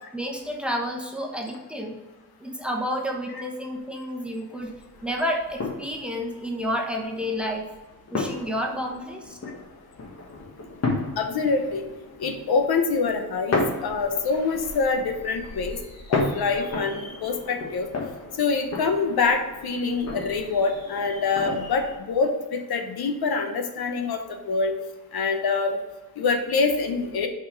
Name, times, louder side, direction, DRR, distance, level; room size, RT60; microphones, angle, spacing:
voice 1, 0.1-2.0 2.4-4.7 5.0-7.7 8.1-9.4, equal, 5° right, 1 dB, 1.0 m, -30 dB
sound 1, 4.6-22.0, left 3 dB, 40° left, 1.4 m, -34 dB
voice 2, 11.2-11.8 12.2-15.8 16.1-17.9 18.4-24.7 25.1-25.8 26.2-27.3, left 4 dB, 80° left, 5 dB, 1.1 m, -25 dB
5.8 x 5.4 x 5.2 m, 1.2 s
wide cardioid pair, 165°, 37 cm